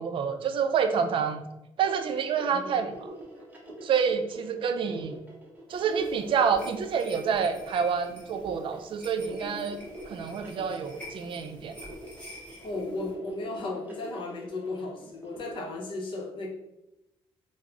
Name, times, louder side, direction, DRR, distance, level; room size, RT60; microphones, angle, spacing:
voice 1, 0.0-1.4 1.8-3.1 3.8-5.2 5.7-9.8 10.1-11.8, right 6 dB, 55° right, 8 dB, 0.4 m, -28 dB
sound 1, 1.8-15.5, right 1 dB, 15° right, 0.8 m, -45 dB
voice 2, 2.5-2.8 12.6-16.5, left 2 dB, 55° left, 1 dB, 0.7 m, -35 dB
sound 2, 5.7-13.1, equal, 10° left, 1.1 m, -49 dB
3.5 x 2.0 x 3.5 m, 0.91 s
cardioid pair, 120°, 10 cm